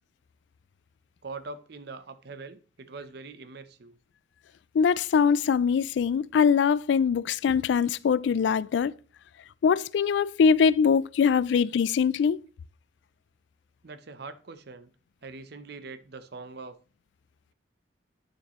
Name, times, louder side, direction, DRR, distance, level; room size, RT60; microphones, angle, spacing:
voice 1, 1.2-3.9 11.5-11.6 13.8-14.9 15.2-16.8, right 3 dB, 65° right, 0.7 m, -42 dB
voice 2, 4.7-8.9 9.6-12.4, left 6 dB, 70° left, 0.3 m, -23 dB
8.7 x 7.0 x 3.0 m
head